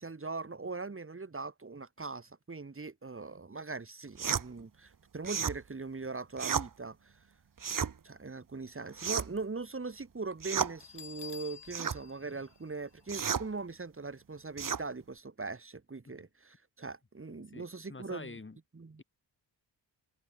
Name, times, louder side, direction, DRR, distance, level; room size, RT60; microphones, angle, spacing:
voice 1, 0.0-7.2 8.0-18.3 18.7-19.0, right 3 dB, 30° right, 4.3 m, -41 dB
sound 1, 4.2-4.5 5.2-5.6 6.4-6.7 7.6-7.9 9.0-9.4 10.4-10.7 11.7-12.0 13.1-13.5 14.6-14.8, right 7 dB, 45° right, 1.8 m, -32 dB
Bell, 10.8-13.5, left 8 dB, 70° left, 4.6 m, -51 dB
voice 2, 17.5-18.6, left 3 dB, 25° left, 5.8 m, -47 dB
wide cardioid pair, 130°, 44 cm